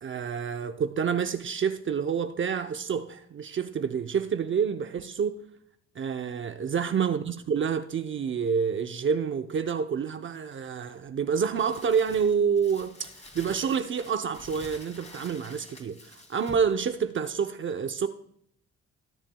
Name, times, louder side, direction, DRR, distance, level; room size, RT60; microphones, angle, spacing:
voice 1, 0.0-5.4 6.0-13.0 13.3-18.1, right 6 dB, 40° right, 0.7 m, -28 dB
Crumpling crinkling, 11.5-16.7, left 2 dB, 20° left, 2.6 m, -48 dB
20.0 x 7.3 x 2.2 m
cardioid pair, 90°, 30 cm